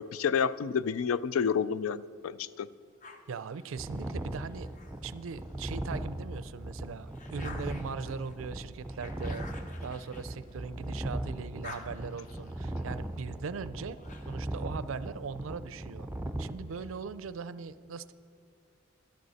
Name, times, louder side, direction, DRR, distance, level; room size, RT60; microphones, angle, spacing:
voice 1, 0.0-2.7, left 6 dB, 85° left, 17 dB, 0.4 m, -29 dB
sound 1, 3.0-5.7 6.2-11.0 11.3-14.6, left 3 dB, 40° left, 0.8 m, -51 dB
voice 2, 3.3-4.7 5.0-9.5 9.8-14.0 14.3-16.1 16.4-18.1, right 5 dB, 70° right, 15 dB, 0.4 m, -40 dB
sound 2, 3.8-16.5, right 1 dB, 10° right, 0.4 m, -38 dB
12.5 x 11.5 x 4.1 m, 2.4 s
head